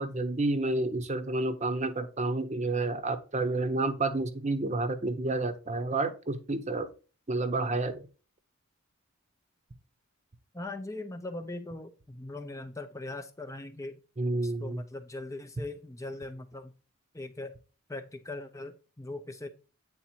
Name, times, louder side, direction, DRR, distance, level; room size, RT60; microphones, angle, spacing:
voice 1, 0.0-6.9 7.3-8.1 14.2-14.8, right 2 dB, 30° right, 0.8 m, -30 dB
voice 2, 10.5-14.0 14.4-16.7 17.1-17.6 17.9-19.5, left 2 dB, 15° left, 0.6 m, -40 dB
8.8 x 4.0 x 4.4 m
head